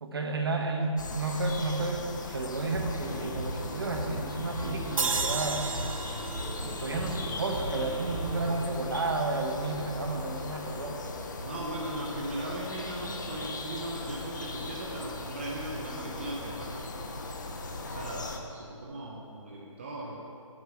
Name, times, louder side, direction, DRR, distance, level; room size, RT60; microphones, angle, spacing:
voice 1, 0.0-5.6 6.6-11.0, right 3 dB, 45° right, 3 dB, 0.9 m, -32 dB
sound 1, 1.0-18.4, left 3 dB, 35° left, 0.6 m, -39 dB
sound 2, 2.7-8.6, right 1 dB, 5° right, 0.9 m, -39 dB
sound 3, 5.0-8.2, right 4 dB, 90° right, 0.8 m, -34 dB
voice 2, 11.4-17.1 17.8-20.2, right 2 dB, 20° right, -3 dB, 0.6 m, -38 dB
8.0 x 5.1 x 6.9 m, 2.6 s
hypercardioid pair, 170°, 17 cm